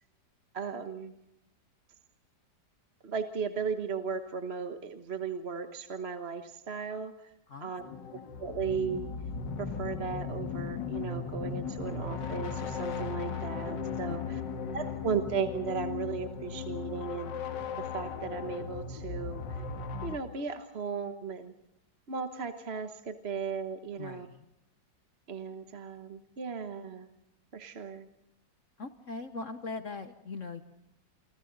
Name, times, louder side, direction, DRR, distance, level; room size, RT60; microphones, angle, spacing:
voice 1, 0.5-1.1 3.0-7.3 7.6-7.8 8.1-9.1 9.6-14.2 14.7-17.3 17.8-19.4 20.0-21.5 22.1-24.3 25.3-27.1 27.5-28.1, right 6 dB, 40° right, 8 dB, 1.3 m, -36 dB
voice 2, 7.5-8.2 24.0-24.5 28.8-30.7, left 4 dB, 50° left, 9 dB, 1.4 m, -42 dB
sound 1, 7.8-20.2, left 5 dB, 80° left, 2.1 m, -37 dB
30.0 x 25.0 x 4.0 m, 0.85 s
omnidirectional pair, 1.9 m